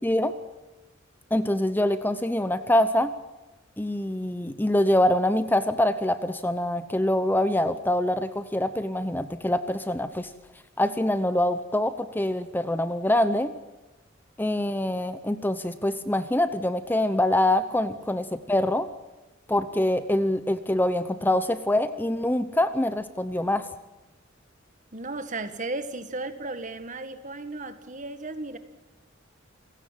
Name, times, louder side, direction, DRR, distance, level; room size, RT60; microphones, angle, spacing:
voice 1, 0.0-0.3 1.3-3.1 3.8-10.3 10.8-13.5 14.4-18.9 19.5-23.7, left 1 dB, 10° left, 12 dB, 0.8 m, -25 dB
voice 2, 24.9-28.6, right 2 dB, 40° right, 10 dB, 1.9 m, -35 dB
28.0 x 17.0 x 7.6 m, 1.1 s
head